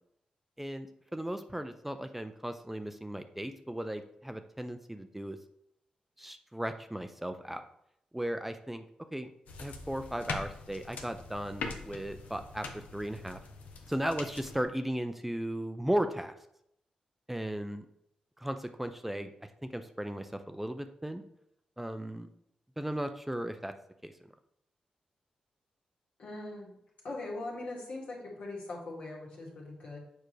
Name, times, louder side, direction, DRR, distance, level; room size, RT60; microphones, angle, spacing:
voice 1, 0.6-5.4 6.2-7.6 8.1-8.8 9.1-9.3 9.6-13.4 13.9-16.3 17.3-17.9 18.4-19.3 19.6-21.2 21.8-22.3 22.8-23.7 24.0-24.3, right 1 dB, 10° right, 8 dB, 0.4 m, -36 dB
sound 1, 9.5-14.6, left 4 dB, 90° left, 0.7 m, -43 dB
voice 2, 26.2-26.7 27.0-30.0, left 2 dB, 70° left, -3 dB, 2.0 m, -41 dB
6.7 x 4.8 x 3.2 m, 0.77 s
cardioid pair, 75°, 2 cm